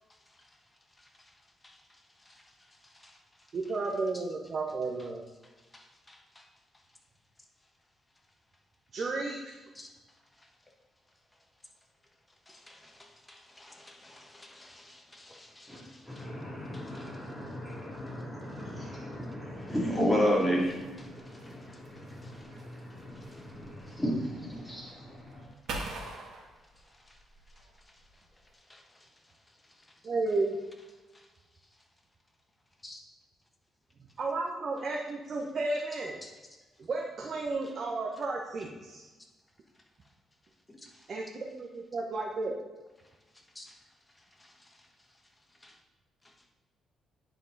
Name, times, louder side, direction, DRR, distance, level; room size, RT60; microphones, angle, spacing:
voice 1, 0.1-0.5 1.0-3.5 4.1-4.2 5.4-6.5 9.7-9.9 10.3-10.5 12.5-16.3 16.7-17.8 18.1-19.0 21.2-23.5 23.9-24.0 26.8-27.2 27.6-28.3 28.5-29.7 31.1-31.3 32.8-33.0 36.2-36.3 37.6-37.7 40.7-41.1 43.6-43.7 44.3-45.2 45.6-45.8 46.2-46.3, left 1 dB, 15° left, 1.2 m, -56 dB
voice 2, 3.5-5.2 8.9-9.5 30.0-30.6 34.2-36.2 36.8-39.0 41.1-42.6, right 3 dB, 50° right, 0.9 m, -33 dB
voice 3, 15.7-25.5, equal, ahead, 2.6 m, -33 dB
sound 1, 20.2-28.6, right 2 dB, 70° right, 1.5 m, -46 dB
9.5 x 4.5 x 4.0 m
cardioid pair, 90°, 0 cm